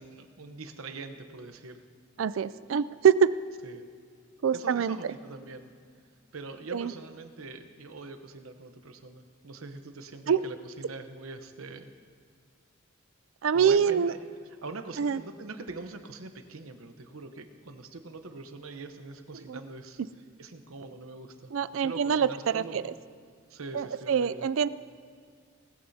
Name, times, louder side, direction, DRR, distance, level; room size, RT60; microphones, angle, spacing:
voice 1, 0.0-1.8 3.6-3.9 4.5-5.7 6.3-11.9 13.5-14.2 14.6-20.0 20.4-22.9 23.5-24.5, right 3 dB, 90° right, 8 dB, 0.9 m, -43 dB
voice 2, 2.2-3.3 4.4-5.0 6.7-6.9 10.3-10.4 13.4-14.1 15.0-15.2 19.5-19.6 21.5-22.3 22.5-22.9 23.7-24.7, right 7 dB, 70° right, 16 dB, 0.4 m, -25 dB
19.0 x 14.5 x 2.8 m, 2.1 s
head